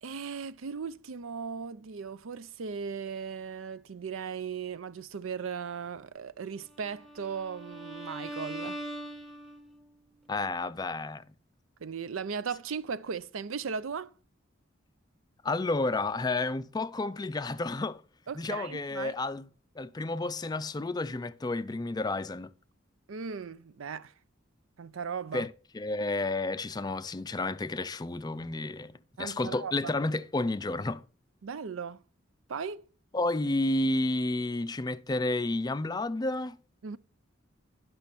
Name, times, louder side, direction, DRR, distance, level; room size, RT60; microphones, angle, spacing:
voice 1, 0.0-8.8 11.8-14.1 18.3-19.2 23.1-24.1 24.8-25.5 29.2-29.9 31.4-32.0 32.5-32.8 36.8-37.0, right 6 dB, 85° right, 0.5 m, -37 dB
Bowed string instrument, 6.8-9.9, right 1 dB, ahead, 0.8 m, -41 dB
voice 2, 10.3-11.2 15.4-18.0 18.4-19.5 19.8-22.5 25.3-31.0 33.1-36.6, left 2 dB, 20° left, 0.4 m, -31 dB
10.5 x 6.3 x 4.2 m
head